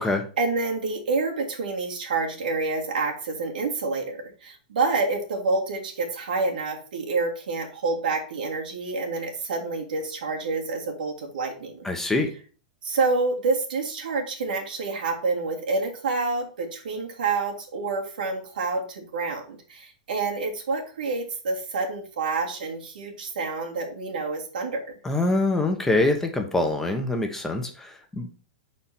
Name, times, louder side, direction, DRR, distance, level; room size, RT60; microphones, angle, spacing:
voice 1, 0.4-11.9 12.8-24.9, right 3 dB, 90° right, 1 dB, 2.0 m, -28 dB
voice 2, 11.8-12.3 25.0-28.3, left 2 dB, 10° left, 4 dB, 0.9 m, -24 dB
4.8 x 4.3 x 5.7 m, 0.39 s
supercardioid pair, 145°, 5 cm